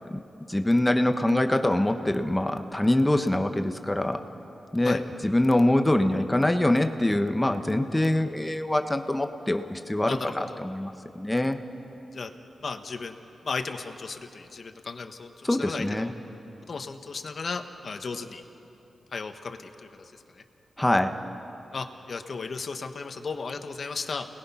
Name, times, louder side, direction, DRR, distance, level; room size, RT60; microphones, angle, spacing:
voice 1, 0.5-4.2 4.7-11.6 15.4-16.1 20.8-21.1, left 1 dB, 15° left, 7 dB, 1.2 m, -24 dB
voice 2, 10.1-10.6 12.1-12.3 12.6-13.2 13.4-16.1 16.7-18.4 19.1-19.9 21.7-24.3, left 4 dB, 60° left, 6 dB, 1.4 m, -35 dB
29.5 x 20.0 x 5.7 m, 2.9 s
cardioid pair, 60°, 0 cm